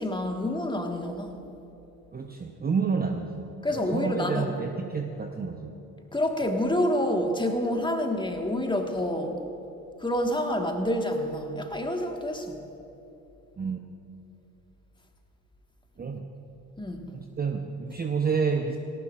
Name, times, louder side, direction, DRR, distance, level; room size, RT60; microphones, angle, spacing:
voice 1, 0.0-1.4 3.6-4.5 6.1-9.4 10.0-12.6 16.8-17.1, left 1 dB, 10° left, 4 dB, 1.5 m, -28 dB
voice 2, 2.1-3.4 3.7-5.7 13.6-13.8 16.0-16.2 17.1-18.8, right 5 dB, 20° right, 4 dB, 0.8 m, -29 dB
18.0 x 17.5 x 2.5 m, 2.9 s
hypercardioid pair, 55°, 48 cm